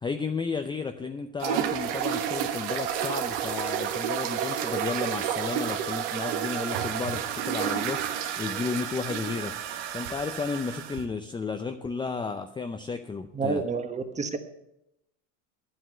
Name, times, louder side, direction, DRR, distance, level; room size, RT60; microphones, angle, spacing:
voice 1, 0.0-9.5 9.9-13.6, left 4 dB, 15° left, 6 dB, 0.6 m, -33 dB
sound 1, 1.4-11.0, right 9 dB, 70° right, 1.5 m, -30 dB
voice 2, 13.3-14.4, right 4 dB, 20° right, 8 dB, 1.3 m, -29 dB
10.0 x 7.9 x 7.6 m, 0.83 s
supercardioid pair, 115°, 37 cm